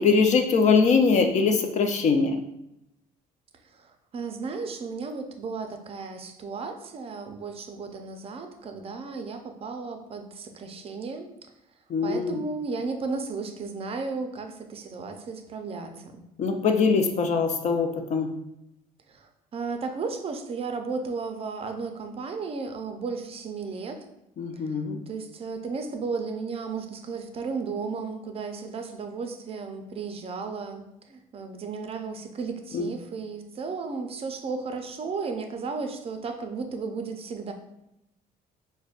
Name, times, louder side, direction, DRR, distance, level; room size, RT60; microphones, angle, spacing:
voice 1, 0.0-2.4 11.9-12.4 16.4-18.3 24.4-25.0 32.7-32.9, left 5 dB, 45° left, 6 dB, 0.5 m, -22 dB
voice 2, 3.7-11.3 12.0-16.2 19.1-24.0 24.5-24.8 25.1-37.5, right 4 dB, 35° right, 6 dB, 0.5 m, -34 dB
4.8 x 2.2 x 2.4 m, 0.85 s
cardioid pair, 110°, 17 cm